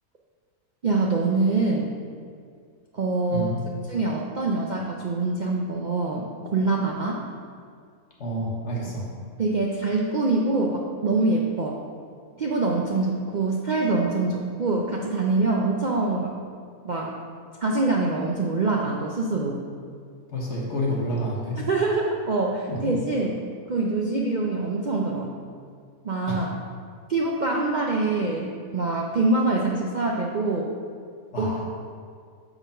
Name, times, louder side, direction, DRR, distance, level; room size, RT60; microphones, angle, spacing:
voice 1, 0.8-1.9 2.9-3.5 3.9-6.3 6.5-7.2 9.4-11.8 12.4-16.3 16.8-17.1 17.6-19.6 21.6-23.4 23.7-25.3 26.0-26.5 27.1-28.5 28.7-30.7 31.4-31.6, right 3 dB, 85° right, -2 dB, 0.4 m, -24 dB
voice 2, 8.2-9.1 20.3-21.6 22.7-22.9 26.3-26.4 31.3-31.7, equal, 50° left, -4 dB, 1.3 m, -29 dB
7.1 x 3.9 x 5.5 m, 2.1 s
omnidirectional pair, 1.6 m